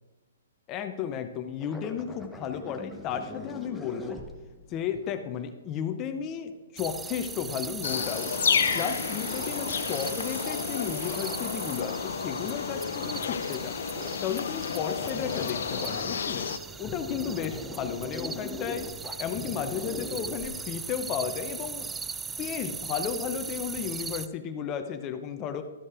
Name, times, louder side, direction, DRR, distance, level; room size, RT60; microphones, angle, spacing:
voice 1, 0.7-4.2 4.7-8.3 8.7-13.8 14.2-16.5 16.8-18.9 19.2-21.9 22.4-25.6, left 8 dB, 25° left, 8 dB, 0.6 m, -33 dB
sound 1, 1.6-5.2 7.8-11.4 12.2-12.3 12.5-13.0 13.2-13.3 13.6-14.5 14.8-16.5 16.7-20.9 21.3-21.4, left 2 dB, 5° left, 1.0 m, -42 dB
sound 2, 6.8-24.3, right 5 dB, 10° right, 0.3 m, -39 dB
sound 3, 7.8-16.6, left 6 dB, 75° left, 0.7 m, -31 dB
13.0 x 5.3 x 4.8 m, 1.3 s
hypercardioid pair, 140°, 0 cm